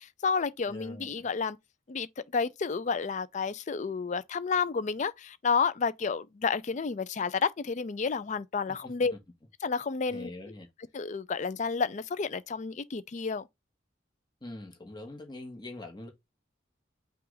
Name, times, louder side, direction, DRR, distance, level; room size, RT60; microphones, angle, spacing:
voice 1, 0.0-1.6 1.9-2.1 2.3-9.2 9.6-10.3 10.9-13.5, left 5 dB, 40° left, 0.4 m, -30 dB
voice 2, 0.7-1.3 8.8-9.2 10.1-10.7 14.4-16.1, left 1 dB, 25° left, 1.1 m, -44 dB
5.6 x 2.4 x 4.0 m
head